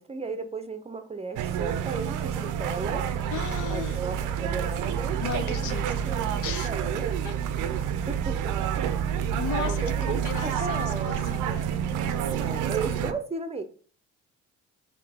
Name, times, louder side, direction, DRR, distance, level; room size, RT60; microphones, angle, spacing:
voice 1, 0.0-3.1 3.7-5.7 6.0-6.3 6.6-7.2 8.1-8.5 9.6-11.2 12.4-13.6, right 4 dB, 20° right, 0.6 m, -35 dB
sound 1, 1.4-13.1, right 8 dB, 90° right, 0.5 m, -28 dB
voice 2, 3.3-4.0 5.2-6.1 6.4-6.7 7.2-7.4 9.3-11.7, left 8 dB, 75° left, 0.6 m, -35 dB
3.9 x 3.1 x 3.4 m
cardioid pair, 90°, 30 cm